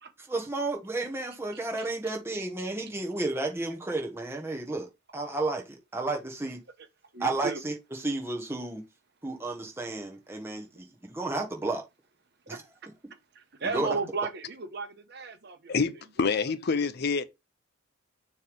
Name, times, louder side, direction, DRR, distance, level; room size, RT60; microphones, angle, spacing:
voice 1, 0.3-6.6 7.2-8.8 9.2-11.9 12.5-12.6 13.6-14.0, right 2 dB, 10° right, 1.1 m, -32 dB
voice 2, 1.5-1.9 2.3-2.4 7.1-7.6 12.5-12.6 13.3-15.7 16.2-16.3, right 4 dB, 55° right, 1.0 m, -35 dB
voice 3, 15.7-17.2, left 5 dB, 50° left, 0.5 m, -27 dB
6.7 x 3.2 x 5.2 m
head